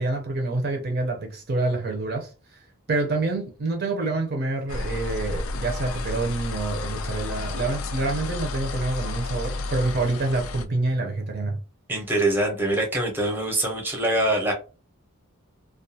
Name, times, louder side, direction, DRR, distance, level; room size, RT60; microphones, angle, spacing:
voice 1, 0.0-2.3 2.9-11.6, right 2 dB, 50° right, 0.6 m, -27 dB
sound 1, 4.7-10.6, left 3 dB, 70° left, 0.4 m, -31 dB
voice 2, 11.9-14.5, right 1 dB, 10° right, 0.7 m, -24 dB
2.3 x 2.3 x 2.7 m
head